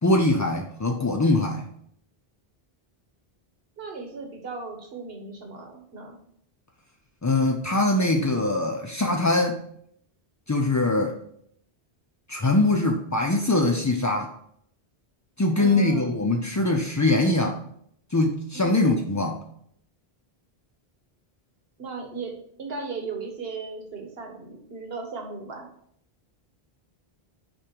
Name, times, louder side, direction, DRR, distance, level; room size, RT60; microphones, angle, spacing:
voice 1, 0.0-1.7 7.2-9.6 10.5-11.2 12.3-14.3 15.4-17.6 18.1-19.4, left 2 dB, 30° left, 2 dB, 0.3 m, -22 dB
voice 2, 3.8-6.2 15.6-16.1 18.5-18.8 21.8-25.7, right 4 dB, 70° right, 2 dB, 1.6 m, -37 dB
6.2 x 5.0 x 4.6 m, 0.68 s
omnidirectional pair, 1.0 m